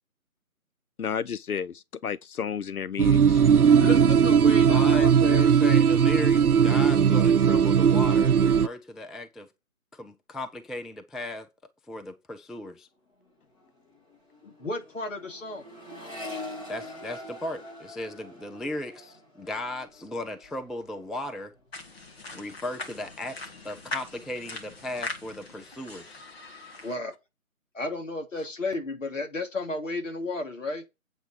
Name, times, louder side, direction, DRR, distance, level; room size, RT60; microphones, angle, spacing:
voice 1, 1.0-3.4, left 7 dB, 90° left, 0.6 m, -32 dB
sound 1, 3.0-8.7, right 7 dB, 85° right, 0.7 m, -19 dB
voice 2, 3.8-5.5 14.4-15.6 26.8-27.1 27.7-30.8, left 2 dB, 60° left, 2.8 m, -33 dB
voice 3, 4.6-9.5 9.9-11.5 11.9-12.9 16.7-21.5 22.3-23.4 23.6-26.2, left 1 dB, ahead, 0.4 m, -36 dB
Accelerating revving vroom, 13.1-13.3 13.5-21.1 21.4-22.0, left 1 dB, 25° left, 2.9 m, -44 dB
sound 2, 21.7-27.0, left 3 dB, 45° left, 2.1 m, -40 dB
8.3 x 7.9 x 4.6 m
figure-of-eight pair, 160°, 43 cm